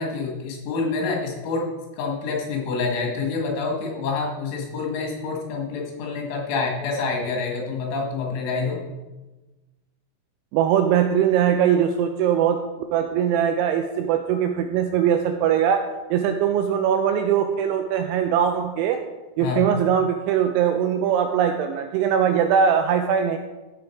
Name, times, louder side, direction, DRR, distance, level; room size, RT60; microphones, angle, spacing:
voice 1, 0.0-1.7 2.0-8.8 19.4-19.6, left 4 dB, 70° left, -1 dB, 4.4 m, -27 dB
voice 2, 10.5-12.6 12.9-15.8 16.1-19.0 19.4-23.4, right 8 dB, 85° right, 6 dB, 2.7 m, -21 dB
14.0 x 7.1 x 4.6 m, 1.1 s
omnidirectional pair, 5.9 m